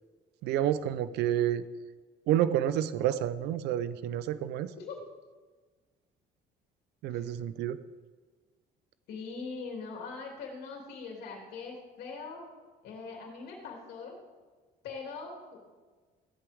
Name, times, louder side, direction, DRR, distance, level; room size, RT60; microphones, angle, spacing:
voice 1, 0.4-1.6 2.3-4.7 7.0-7.8, right 11 dB, 85° right, 14 dB, 0.6 m, -29 dB
voice 2, 9.1-12.4 12.8-14.1 14.8-15.7, left 4 dB, 70° left, -1 dB, 2.7 m, -41 dB
16.0 x 12.0 x 3.5 m, 1.4 s
cardioid pair, 110°, 17 cm